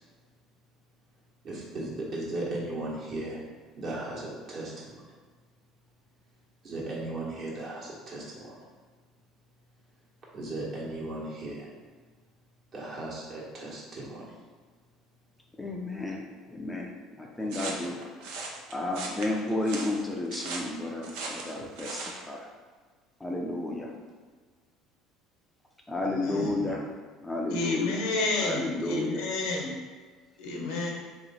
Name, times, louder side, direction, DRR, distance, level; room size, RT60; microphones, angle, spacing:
voice 1, 1.4-3.4 3.8-5.0 6.6-8.6 10.3-11.7 12.7-14.4 26.3-26.7, right 2 dB, 45° right, -5 dB, 1.4 m, -36 dB
voice 2, 15.6-18.1 18.4-22.5 23.2-23.9 25.9-26.8 27.2-28.0 28.4-29.3, left 2 dB, 15° left, 0 dB, 0.5 m, -32 dB
sound 1, 17.5-22.2, right 3 dB, 80° right, 0.6 m, -38 dB
voice 3, 26.0-26.6 27.5-29.7 30.4-30.9, left 3 dB, 85° left, 0 dB, 1.0 m, -31 dB
3.3 x 3.0 x 4.1 m, 1.5 s
supercardioid pair, 100°, 0 cm